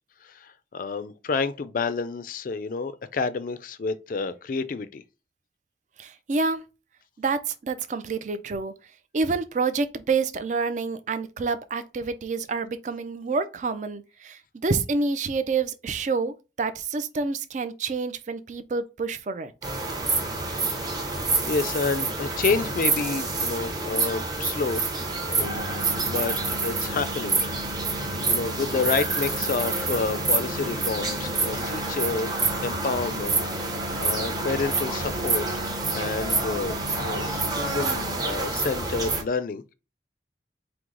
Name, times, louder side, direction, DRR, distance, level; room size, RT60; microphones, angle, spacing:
voice 1, 0.2-5.0 20.8-21.1 21.5-24.8 25.2-25.7 26.0-27.4 27.9-39.7, left 4 dB, 50° left, 0.4 m, -29 dB
voice 2, 6.0-6.6 7.2-8.7 9.1-19.5, right 4 dB, 45° right, 0.4 m, -28 dB
sound 1, 19.6-39.2, right 3 dB, 20° right, 0.8 m, -27 dB
sound 2, 25.4-38.2, left 4 dB, 60° right, 0.8 m, -41 dB
4.6 x 2.0 x 3.7 m
head